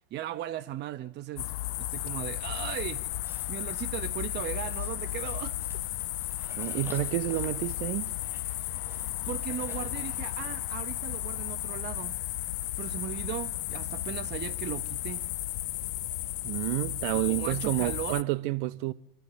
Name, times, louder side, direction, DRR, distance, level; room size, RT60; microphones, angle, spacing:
voice 1, 0.1-3.0 3.5-5.8 9.3-12.2 12.8-15.2 17.1-18.2, right 13 dB, 35° right, 0.9 m, -37 dB
sound 1, 1.4-18.2, left 16 dB, 60° left, 1.0 m, -34 dB
Livestock farm animals working animals, 2.6-10.5, right 1 dB, 5° right, 5.9 m, -53 dB
voice 2, 6.6-8.1 16.4-18.9, right 18 dB, 50° right, 1.2 m, -29 dB
27.5 x 22.0 x 6.8 m
figure-of-eight pair, 90°, 31 cm